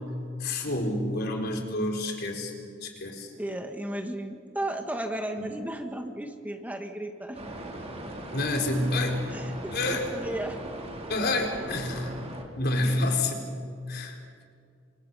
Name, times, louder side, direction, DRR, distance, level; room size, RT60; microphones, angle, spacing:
voice 1, 0.4-2.5 2.8-3.3 5.4-5.5 8.3-9.2 9.7-10.1 11.1-12.2 12.6-13.5 13.9-14.2, left 2 dB, 55° left, 2 dB, 4.2 m, -28 dB
voice 2, 3.4-7.4 9.3-10.6, right 1 dB, 10° right, 4 dB, 1.5 m, -34 dB
sound 1, 7.3-12.4, right 1 dB, 35° right, 3.5 m, -39 dB
30.0 x 25.0 x 5.6 m, 2.4 s
head